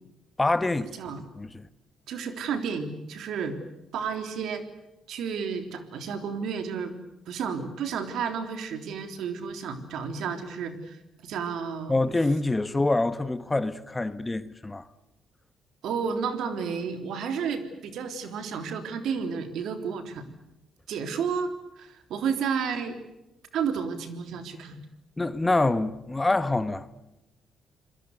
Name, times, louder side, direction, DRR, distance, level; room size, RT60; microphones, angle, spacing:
voice 1, 0.4-0.9 1.4-1.7 11.9-14.9 25.2-26.9, left 2 dB, 15° left, 1.3 m, -26 dB
voice 2, 2.1-3.6 3.9-4.6 5.1-6.9 7.3-11.9 15.8-20.3 20.9-21.5 21.8-23.0 23.5-24.8, right 6 dB, 80° right, 3.5 m, -31 dB
27.5 x 21.5 x 8.1 m
cardioid pair, 90°, 0 cm